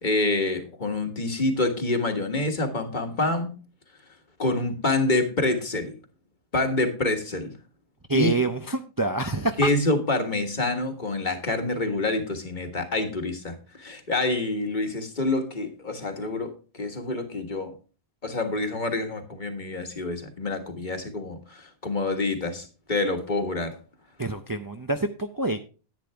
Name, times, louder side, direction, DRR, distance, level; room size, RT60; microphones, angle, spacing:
voice 1, 0.0-3.6 4.4-6.0 6.5-7.5 8.1-8.4 9.6-17.7 18.2-23.8, left 2 dB, 50° left, 5 dB, 1.7 m, -27 dB
voice 2, 8.1-9.7 24.2-25.6, right 2 dB, 25° right, 6 dB, 0.6 m, -27 dB
10.5 x 9.6 x 3.4 m, 0.34 s
omnidirectional pair, 1.0 m